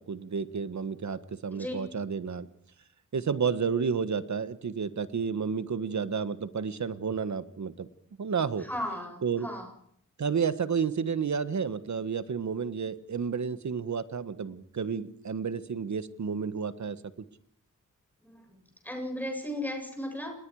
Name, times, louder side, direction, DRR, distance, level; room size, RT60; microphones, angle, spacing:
voice 1, 0.1-2.5 3.1-7.9 8.2-8.7 9.2-9.5 10.2-17.0, right 6 dB, 65° right, 13 dB, 1.5 m, -31 dB
voice 2, 8.7-9.7 18.3-18.6 18.8-20.3, left 1 dB, 5° left, 2 dB, 7.9 m, -35 dB
27.0 x 21.0 x 4.9 m, 0.67 s
wide cardioid pair, 110°, 31 cm